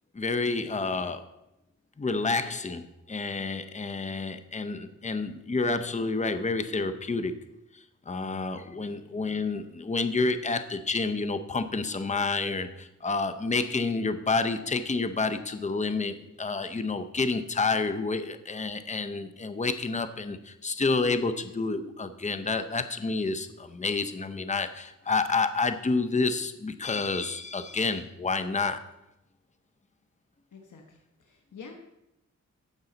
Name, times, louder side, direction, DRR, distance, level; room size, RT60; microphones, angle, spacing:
voice 1, 0.1-1.3 2.0-7.4 8.1-28.8, left 3 dB, 25° left, 0.7 m, -29 dB
voice 2, 8.6-9.0 30.5-31.7, left 5 dB, 80° left, 1.2 m, -49 dB
15.0 x 5.5 x 4.0 m
wide cardioid pair, 75°, 30 cm